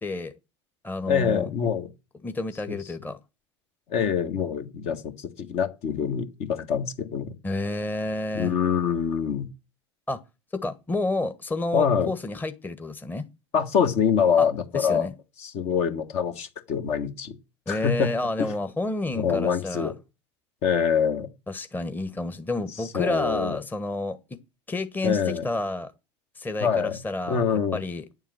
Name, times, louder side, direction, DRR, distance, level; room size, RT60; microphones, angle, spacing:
voice 1, 0.0-0.3 0.8-1.5 2.2-3.2 7.4-8.5 10.1-10.2 10.5-13.2 14.4-14.5 14.7-15.1 17.7-19.9 21.5-24.2 24.7-25.9 26.4-27.4 27.7-28.0, left 2 dB, 15° left, 1.2 m, -30 dB
voice 2, 1.1-1.9 2.7-2.8 3.9-7.3 8.3-9.5 11.7-12.1 13.5-15.1 15.4-17.3 17.7-18.1 18.4-18.5 19.1-19.9 20.6-21.3 22.8-23.6 25.0-25.5 26.6-27.0 27.3-27.8, left 7 dB, 50° left, 1.7 m, -25 dB
9.6 x 7.3 x 7.7 m
figure-of-eight pair, 80°, 15 cm